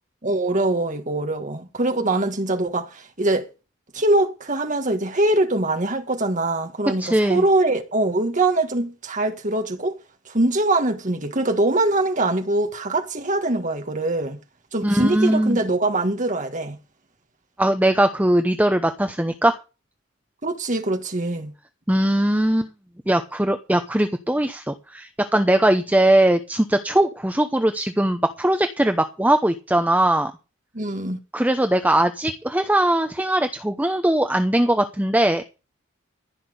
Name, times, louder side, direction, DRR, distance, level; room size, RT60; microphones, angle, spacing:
voice 1, 0.2-3.5 3.9-10.0 10.3-14.4 14.7-16.8 20.4-21.5 30.7-31.2, right 2 dB, 35° right, 1.7 m, -23 dB
voice 2, 7.0-7.4 14.8-15.6 17.6-19.6 21.9-22.7 23.1-30.3 31.3-35.4, right 1 dB, 10° right, 0.8 m, -20 dB
15.0 x 5.8 x 8.1 m
head